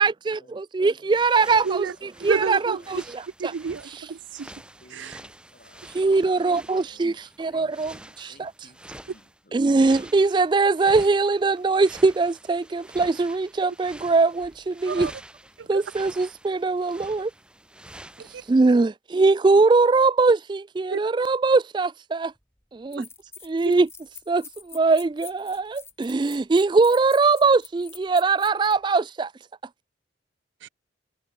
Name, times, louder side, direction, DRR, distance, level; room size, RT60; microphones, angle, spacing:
voice 1, 0.0-1.9 2.2-3.5 4.0-4.1 5.9-8.5 9.5-15.1 15.7-17.3 18.5-22.3 22.7-23.1 23.4-23.9 24.3-29.3, right 3 dB, 25° right, 0.3 m, -21 dB
voice 2, 1.0-1.3 1.6-3.0 4.8-9.6, left 1 dB, 50° left, 7.9 m, -55 dB
sound 1, 1.1-9.4 9.7-18.5, right 1 dB, 5° right, 2.9 m, -47 dB
voice 3, 2.3-3.0 3.4-4.5 4.9-5.1 14.9-15.1 15.7-15.8 18.2-18.4 20.9-21.0 23.0-23.1 30.6-30.7, right 5 dB, 85° right, 0.5 m, -30 dB
sound 2, 22.3-22.4 22.9-28.8, left 5 dB, 15° left, 6.2 m, -46 dB
head